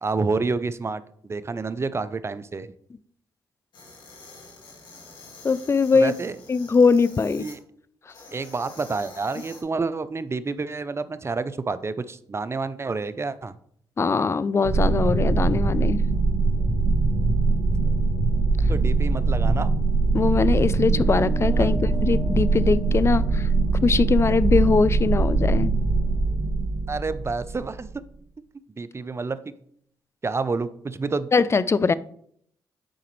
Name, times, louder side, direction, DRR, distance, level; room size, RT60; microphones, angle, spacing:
voice 1, 0.0-2.7 5.9-6.4 7.4-7.6 8.3-13.6 18.7-19.7 21.5-21.7 26.9-27.9 28.8-29.4 30.2-31.3, right 4 dB, 30° right, 14 dB, 0.5 m, -29 dB
sound 1, 3.7-7.6 8.1-9.6, left 3 dB, 65° left, 2.1 m, -47 dB
voice 2, 5.4-6.1 6.5-7.4 14.0-16.0 20.1-23.5 23.8-25.7 31.3-31.9, left 4 dB, 30° left, 17 dB, 0.4 m, -21 dB
sound 2, 14.6-27.9, right 3 dB, 85° right, 2.0 m, -22 dB
sound 3, 20.9-25.7, right 1 dB, 5° right, 0.9 m, -39 dB
8.7 x 4.9 x 3.1 m, 0.66 s
supercardioid pair, 55°, 9 cm